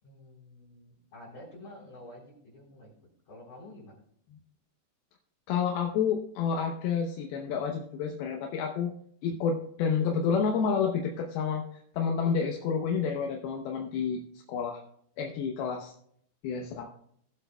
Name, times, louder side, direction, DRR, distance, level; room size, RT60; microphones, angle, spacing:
voice 1, 0.0-2.9 3.3-4.0, left 1 dB, 40° left, -8 dB, 4.7 m, -49 dB
voice 2, 5.5-8.9 9.2-11.6 11.9-14.2 14.5-14.8 15.2-15.9 16.4-16.9, left 6 dB, 75° left, 1 dB, 2.5 m, -29 dB
21.0 x 7.9 x 2.3 m, 0.68 s
omnidirectional pair, 5.2 m